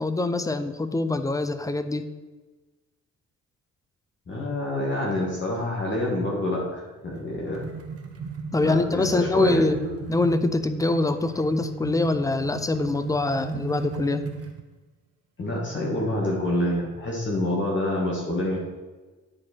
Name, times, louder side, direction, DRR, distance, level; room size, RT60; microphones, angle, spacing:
voice 1, 0.0-2.1 8.5-9.7 10.1-14.2, left 3 dB, 10° left, 10 dB, 0.6 m, -24 dB
voice 2, 4.3-7.6 8.6-9.9 15.4-18.6, left 1 dB, 40° left, -3 dB, 1.9 m, -27 dB
sound 1, 7.1-14.6, right 5 dB, 50° right, 1.2 m, -36 dB
9.7 x 4.6 x 4.5 m, 1.2 s
cardioid pair, 90°, 30 cm